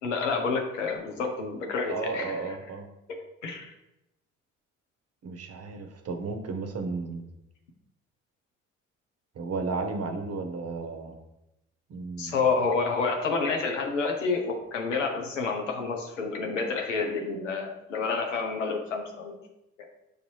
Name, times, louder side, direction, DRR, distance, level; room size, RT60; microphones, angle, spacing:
voice 1, 0.0-2.4 3.1-3.7 12.2-19.4, left 4 dB, 90° left, 3 dB, 0.6 m, -29 dB
voice 2, 1.9-2.9 5.2-7.3 9.3-11.1 11.9-12.4, right 4 dB, 40° right, 5 dB, 0.9 m, -33 dB
6.5 x 2.7 x 3.0 m, 0.89 s
hypercardioid pair, 45°, 36 cm